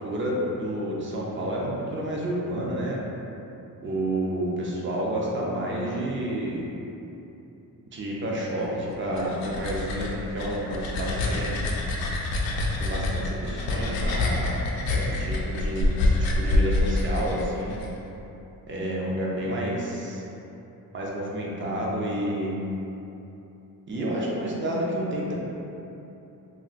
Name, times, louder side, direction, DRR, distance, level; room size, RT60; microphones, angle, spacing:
voice 1, 0.0-3.0 3.8-6.7 7.9-11.6 12.8-14.5 14.9-17.7 18.7-20.2 20.9-22.6 23.9-25.3, right 1 dB, 35° right, -4 dB, 0.5 m, -29 dB
sound 1, 8.9-17.9, left 2 dB, 85° left, 0.5 m, -26 dB
2.4 x 2.3 x 3.8 m, 3.0 s
wide cardioid pair, 145°, 36 cm